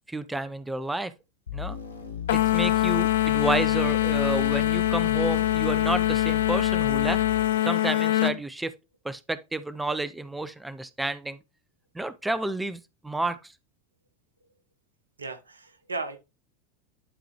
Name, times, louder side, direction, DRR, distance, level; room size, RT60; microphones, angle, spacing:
voice 1, 0.1-1.1 1.5-1.8 2.3-7.2 7.6-8.7 9.0-11.4 11.9-13.4, right 2 dB, 5° right, 0.5 m, -30 dB
sound 1, 1.5-7.6, left 9 dB, 80° left, 1.1 m, -34 dB
sound 2, 2.3-8.4, left 13 dB, 65° left, 0.4 m, -24 dB
voice 2, 15.2-16.2, right 3 dB, 80° right, 1.0 m, -36 dB
11.0 x 3.9 x 3.0 m
figure-of-eight pair, 85°, 0 cm